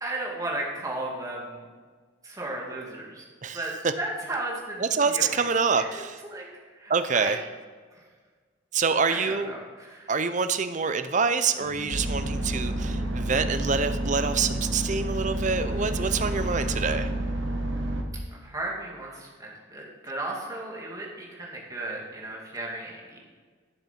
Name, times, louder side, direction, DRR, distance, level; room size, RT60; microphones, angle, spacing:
voice 1, 0.0-1.6 2.2-3.2 3.5-3.7 4.0-5.5 5.8-6.4 6.8-7.3 9.1-10.1 18.4-23.2, right 2 dB, 20° right, -3 dB, 2.2 m, -35 dB
voice 2, 3.4-3.9 4.8-6.2 6.9-7.4 8.7-9.5 10.1-17.1, right 5 dB, 40° right, 10 dB, 0.6 m, -26 dB
sound 1, 11.6-17.0, left 2 dB, 35° left, 2.5 m, -39 dB
sound 2, 11.9-18.0, right 1 dB, 65° right, 1.4 m, -30 dB
12.0 x 6.8 x 5.9 m, 1.5 s
head